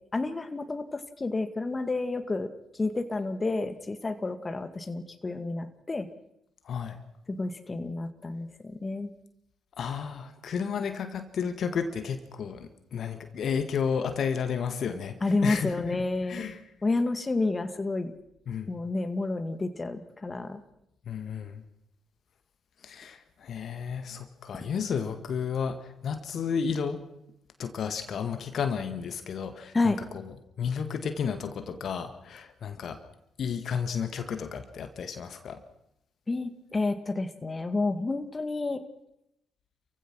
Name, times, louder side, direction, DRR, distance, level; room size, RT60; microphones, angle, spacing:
voice 1, 0.1-6.1 7.3-9.1 15.2-16.5 16.8-18.1 18.7-20.6 29.7-30.0 36.3-38.8, left 3 dB, 30° left, 9 dB, 1.9 m, -30 dB
voice 2, 6.6-7.0 9.8-16.6 18.5-18.7 21.1-21.6 22.8-27.0 27.6-33.0 33.4-35.6, left 6 dB, 55° left, 9 dB, 1.8 m, -32 dB
28.0 x 15.5 x 6.2 m, 0.82 s
hypercardioid pair, 50°, 0 cm